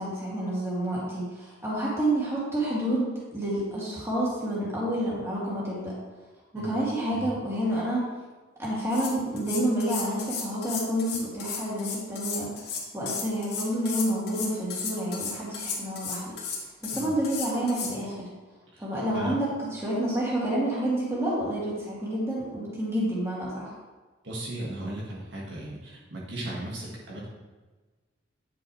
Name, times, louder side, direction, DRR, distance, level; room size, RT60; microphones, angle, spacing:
voice 1, 0.0-5.9 6.5-8.1 8.6-16.3 16.8-18.3 18.8-23.7, right 1 dB, 15° right, -7 dB, 2.3 m, -29 dB
sound 1, 8.6-8.7 8.9-17.9, left 5 dB, 55° left, 1.6 m, -34 dB
voice 2, 24.2-27.3, right 1 dB, 65° right, -4 dB, 1.7 m, -36 dB
9.6 x 6.2 x 3.2 m, 1.3 s
head